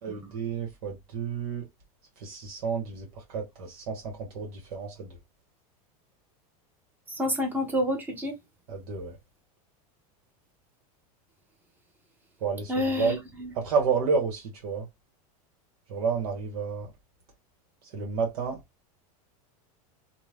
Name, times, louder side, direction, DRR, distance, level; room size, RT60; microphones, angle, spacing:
voice 1, 0.0-1.7 2.2-5.2 8.7-9.2 12.4-13.2 13.5-14.9 15.9-16.9 17.9-18.6, right 5 dB, 75° right, 1.1 m, -30 dB
voice 2, 7.1-8.3 12.7-13.5, left 1 dB, 10° right, 0.8 m, -29 dB
2.7 x 2.2 x 3.2 m
supercardioid pair, 145°, 19 cm